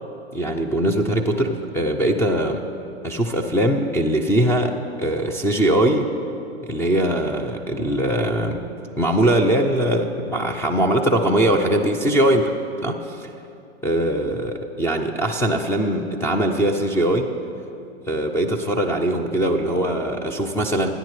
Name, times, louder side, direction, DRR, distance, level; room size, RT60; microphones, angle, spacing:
voice 1, 0.3-2.6 3.0-4.7 5.0-6.1 6.7-8.6 9.0-12.4 12.8-13.3 13.8-17.3 18.1-20.9, right 1 dB, 5° left, 4 dB, 0.6 m, -21 dB
28.0 x 10.0 x 3.2 m, 2.6 s
hypercardioid pair, 115°, 33 cm